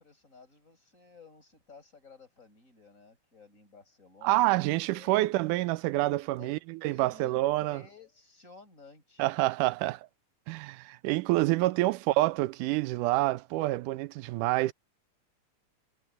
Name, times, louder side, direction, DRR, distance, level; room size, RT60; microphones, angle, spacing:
voice 1, 0.0-5.4 6.4-6.5 6.9-9.4 11.6-11.7, left 4 dB, 25° left, 7.4 m, -55 dB
voice 2, 4.2-7.8 9.2-10.1 10.5-14.7, right 18 dB, 90° right, 2.2 m, -27 dB
omnidirectional pair, 3.6 m